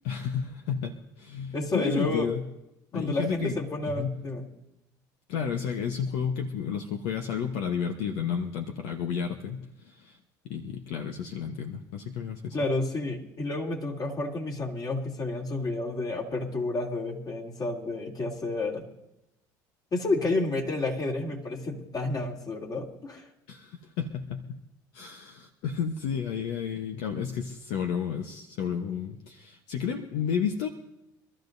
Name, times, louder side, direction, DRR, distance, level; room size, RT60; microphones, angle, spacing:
voice 1, 0.0-2.4 2.9-3.6 3.9-4.1 5.3-10.2 10.5-12.6 23.5-24.6 24.9-30.7, left 7 dB, 75° left, 4 dB, 1.1 m, -32 dB
voice 2, 1.5-2.3 2.9-4.5 12.5-18.8 19.9-23.3, left 2 dB, 40° left, -1 dB, 3.2 m, -30 dB
25.0 x 13.0 x 2.7 m, 0.89 s
supercardioid pair, 80°, 10 cm